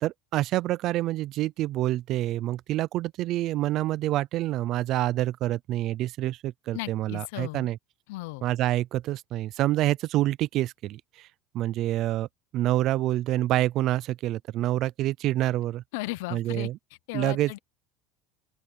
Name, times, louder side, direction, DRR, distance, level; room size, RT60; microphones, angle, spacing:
voice 1, 0.0-7.8 8.4-11.3 11.5-12.3 12.5-15.8 16.3-16.8 17.1-17.5, right 15 dB, 40° right, 0.3 m, -27 dB
voice 2, 6.7-7.7 8.1-8.4 15.9-16.7 17.1-17.6, left 21 dB, 75° left, 0.6 m, -35 dB
open air
cardioid pair, 170°, 0 cm